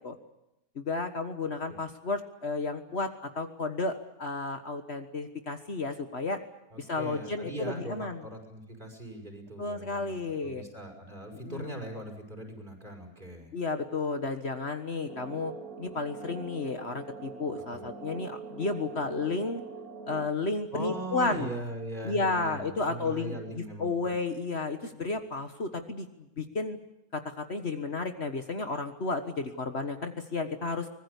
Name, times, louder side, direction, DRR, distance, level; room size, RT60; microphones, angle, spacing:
voice 1, 0.8-6.4 6.8-8.2 9.6-10.6 11.4-11.7 13.5-15.5 15.8-19.6 20.1-21.6 22.0-26.8 27.1-30.9, left 3 dB, 50° left, 7 dB, 1.7 m, -32 dB
voice 2, 6.7-13.5 17.7-17.9 20.7-24.2, right 1 dB, 35° right, 2 dB, 5.9 m, -40 dB
sound 1, 15.1-20.3, right 5 dB, 75° right, 3.4 m, -43 dB
24.5 x 20.5 x 8.3 m, 0.91 s
omnidirectional pair, 1.5 m